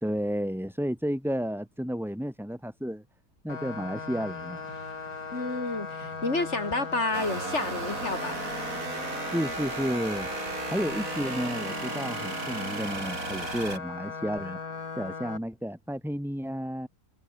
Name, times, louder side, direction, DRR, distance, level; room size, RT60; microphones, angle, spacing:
voice 1, 0.0-3.0 3.4-4.6 9.3-14.6 15.0-16.9, equal, ahead, 3.8 m, -32 dB
sound 1, 3.5-15.4, left 5 dB, 65° left, 2.9 m, -38 dB
sound 2, 3.9-9.1, right 2 dB, 85° right, 7.5 m, -51 dB
voice 2, 5.3-8.4, left 2 dB, 45° left, 4.1 m, -30 dB
sound 3, 7.1-13.8, right 3 dB, 55° right, 3.5 m, -35 dB
omnidirectional pair, 1.7 m